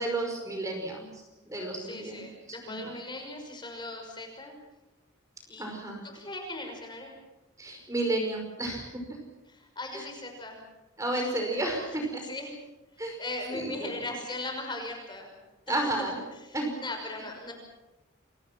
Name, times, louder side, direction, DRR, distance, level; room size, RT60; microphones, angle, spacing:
voice 1, 0.0-2.3 2.6-2.9 5.6-6.1 7.6-9.2 9.9-10.0 11.0-12.2 13.0-13.2 13.5-13.9 15.7-16.2 16.5-16.7, right 2 dB, 15° right, 2 dB, 5.3 m, -32 dB
voice 2, 1.8-4.6 5.5-5.7 6.1-7.1 9.5-10.6 11.1-11.6 12.2-12.5 13.0-15.3 15.7-16.1 16.4-17.5, left 2 dB, 20° left, 3 dB, 5.8 m, -39 dB
29.5 x 24.5 x 6.1 m, 1.0 s
head